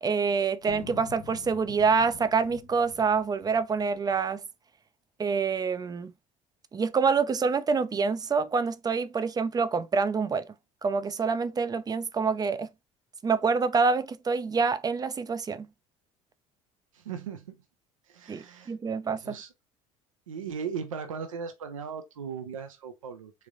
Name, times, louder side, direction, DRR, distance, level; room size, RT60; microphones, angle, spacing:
voice 1, 0.0-4.4 5.2-6.1 6.7-10.4 10.8-12.7 13.2-15.7 18.3-19.4, right 5 dB, 25° right, 0.4 m, -26 dB
sound 1, 0.6-4.3, left 12 dB, 70° left, 0.5 m, -47 dB
voice 2, 16.9-17.6 18.1-19.5 20.3-23.3, right 6 dB, 85° right, 0.5 m, -38 dB
3.5 x 3.1 x 2.4 m
hypercardioid pair, 65°, 17 cm